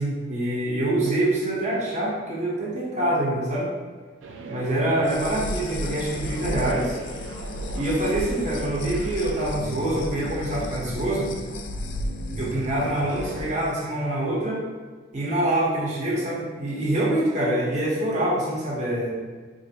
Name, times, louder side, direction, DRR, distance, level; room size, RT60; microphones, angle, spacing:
voice 1, 0.0-3.7 4.5-7.0 7.7-11.3 12.4-14.6 15.1-19.1, right 1 dB, 40° right, -6 dB, 0.9 m, -25 dB
sound 1, 4.2-13.5, right 2 dB, 85° right, 0.4 m, -39 dB
sound 2, 5.0-13.7, left 1 dB, 75° left, 0.3 m, -34 dB
4.1 x 2.5 x 2.8 m, 1.5 s
head